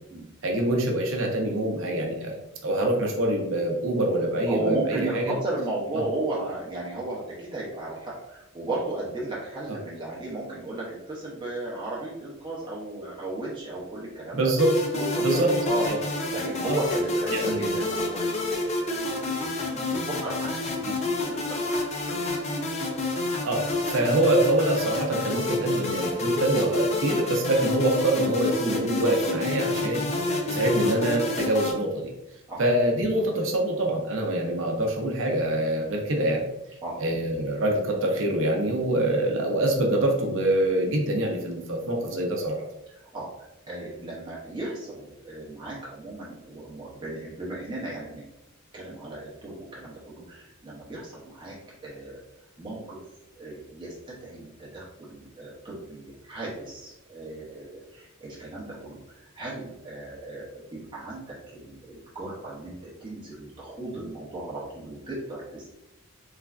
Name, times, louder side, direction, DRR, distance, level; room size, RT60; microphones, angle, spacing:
voice 1, 0.4-2.4 2.6-5.3 5.9-6.0 14.3-14.8 15.2-15.5 15.9-16.0 16.7-16.8 17.3-17.8 23.4-30.0 30.5-32.1 32.6-36.5 37.0-42.6, right 1 dB, 65° right, 1 dB, 0.6 m, -25 dB
voice 2, 4.5-14.4 14.9-15.9 16.3-21.7 22.1-22.6 32.5-32.6 36.8-37.0 43.1-48.2 48.7-51.5 51.8-52.2 52.6-53.0 53.4-65.7, right 2 dB, 25° right, -6 dB, 0.6 m, -35 dB
sound 1, 14.6-31.7, left 2 dB, 35° left, 0.4 m, -28 dB
3.2 x 2.4 x 2.3 m, 0.92 s
head